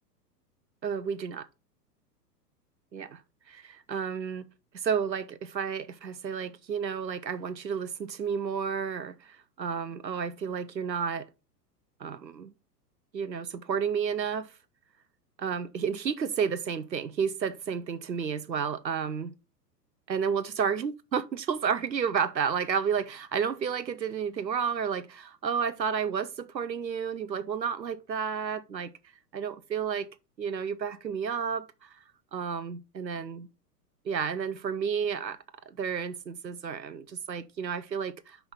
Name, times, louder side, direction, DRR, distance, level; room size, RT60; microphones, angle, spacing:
voice 1, 0.8-1.5 2.9-3.2 3.5-4.4 4.7-9.2 9.6-11.3 12.0-12.5 13.1-14.5 15.4-19.3 20.1-28.9 29.3-30.1 30.4-31.7 32.3-33.5 34.0-35.4 35.7-38.5, right 7 dB, 90° right, 0.8 m, -31 dB
5.6 x 5.5 x 4.5 m
figure-of-eight pair, 100°, 49 cm